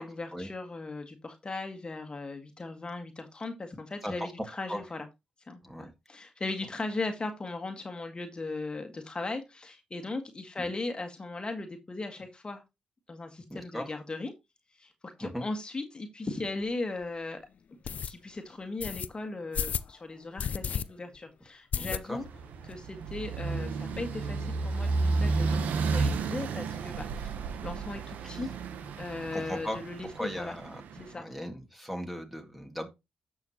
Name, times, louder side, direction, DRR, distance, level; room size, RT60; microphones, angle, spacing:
voice 1, 0.0-5.1 5.5-12.6 13.1-14.3 14.8-14.9 15.2-17.4 18.1-22.3 22.6-28.5 29.0-30.5 30.9-31.4, left 3 dB, 35° left, 1.7 m, -38 dB
voice 2, 13.5-13.9 15.2-15.4 21.7-22.2 28.2-28.4 29.3-29.8 30.2-30.8 31.1-32.9, equal, 5° right, 2.1 m, -37 dB
sound 1, 16.4-16.5 17.0-17.1 17.8-18.1 18.8-19.1 19.5-19.9 20.4-20.8 21.2-21.3 21.7-22.4 22.7-22.8 23.1-23.2 23.4-24.0, left 7 dB, 65° left, 0.4 m, -33 dB
sound 2, 22.2-31.1, right 4 dB, 85° right, 0.9 m, -32 dB
10.5 x 6.3 x 3.0 m
supercardioid pair, 55°, 3 cm